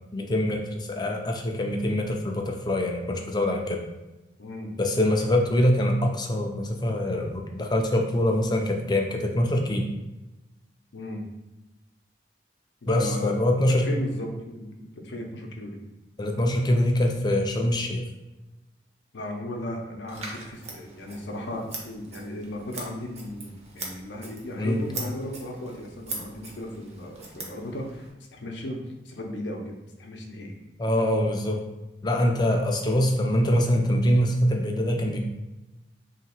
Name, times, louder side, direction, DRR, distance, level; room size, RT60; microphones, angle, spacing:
voice 1, 0.1-3.8 4.8-9.8 12.9-13.9 16.2-18.0 24.6-24.8 30.8-31.6 32.0-35.2, left 1 dB, 25° left, 1 dB, 0.5 m, -24 dB
voice 2, 4.4-4.7 10.9-11.2 12.8-13.4 13.7-15.8 19.1-28.1 28.3-30.5, left 1 dB, 75° left, 1 dB, 0.7 m, -36 dB
Scissors, 20.1-28.1, right 3 dB, 35° right, 0.8 m, -41 dB
3.1 x 2.8 x 4.3 m, 1.0 s
head